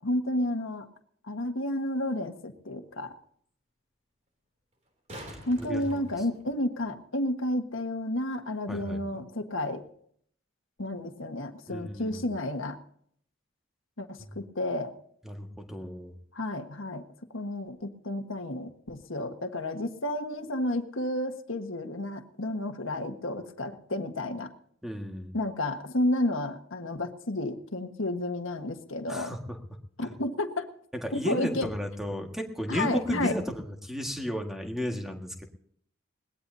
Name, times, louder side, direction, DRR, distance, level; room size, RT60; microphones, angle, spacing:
voice 1, 0.0-0.9 1.3-3.1 5.4-9.8 10.8-12.8 14.0-14.9 16.3-17.0 17.3-24.5 25.3-29.3 30.0-30.7 31.1-31.7 32.7-33.3, left 1 dB, 75° left, 6 dB, 1.4 m, -31 dB
sound 1, 1.9-2.0 4.7-6.9 9.7-9.8, equal, 35° right, 2.9 m, -46 dB
voice 2, 5.3-6.0 8.7-9.2 11.7-12.3 14.2-14.3 15.2-16.1 24.8-25.3 29.1-29.6 30.0-30.1 31.0-35.4, equal, ahead, 2 dB, 1.7 m, -34 dB
21.5 x 18.5 x 2.7 m, 0.63 s
head